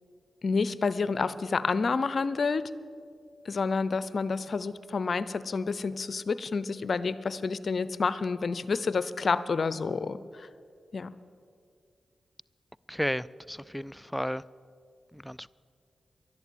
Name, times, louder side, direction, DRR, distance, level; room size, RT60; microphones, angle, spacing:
voice 1, 0.4-2.7 3.5-10.5 10.9-11.1, left 4 dB, 60° left, 0.6 m, -29 dB
voice 2, 12.9-14.4 15.1-15.5, equal, 5° left, 0.3 m, -33 dB
12.0 x 11.0 x 8.6 m
supercardioid pair, 40°, 0 cm